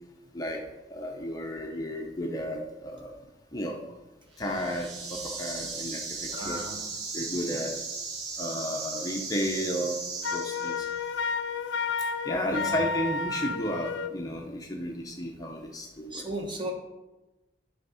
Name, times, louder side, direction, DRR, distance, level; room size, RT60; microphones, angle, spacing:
voice 1, 0.9-3.1 3.5-3.8 4.4-6.6 7.1-7.7 8.4-10.0 10.3-10.9 12.2-16.4, equal, 20° left, 1 dB, 0.7 m, -33 dB
sound 1, 4.4-11.1, right 4 dB, 65° right, 1.5 m, -37 dB
voice 2, 6.3-6.9 12.5-12.7 16.1-16.7, right 1 dB, 25° right, 2 dB, 1.0 m, -35 dB
Wind instrument woodwind instrument, 10.2-14.2, left 5 dB, 75° left, 0.4 m, -31 dB
10.5 x 3.6 x 5.5 m, 1.1 s
head